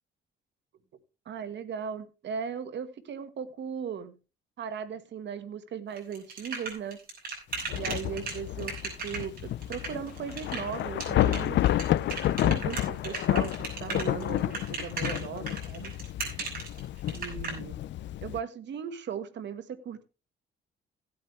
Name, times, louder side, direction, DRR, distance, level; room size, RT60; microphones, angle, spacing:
voice 1, 1.2-4.2 4.6-7.0 7.7-11.6 12.3-15.9 17.1-17.8 18.2-20.0, right 7 dB, 65° right, 12 dB, 1.5 m, -37 dB
sound 1, 6.0-17.5, right 4 dB, 50° right, 6.1 m, -36 dB
Thunder / Rain, 7.5-18.4, left 13 dB, 65° left, 0.5 m, -30 dB
16.5 x 8.7 x 3.3 m, 0.31 s
cardioid pair, 90°, 20 cm